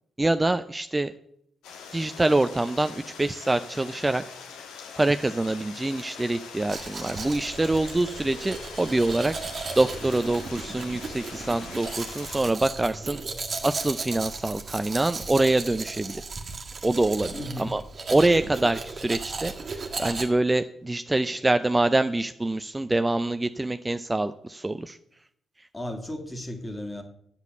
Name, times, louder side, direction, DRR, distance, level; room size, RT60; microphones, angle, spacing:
voice 1, 0.2-1.1 1.9-4.2 5.0-9.3 9.8-13.2 13.6-16.2 16.8-17.8 18.1-25.0, right 2 dB, 20° right, 11 dB, 0.5 m, -25 dB
Stream, 1.6-12.4, left 6 dB, 80° left, 1.5 m, -43 dB
Domestic sounds home sounds, 6.7-20.3, right 4 dB, 45° right, 1.7 m, -36 dB
voice 2, 17.3-17.8 25.7-27.0, left 1 dB, 20° left, 5 dB, 2.3 m, -35 dB
8.2 x 7.2 x 7.9 m, 0.69 s
hypercardioid pair, 40°, 0 cm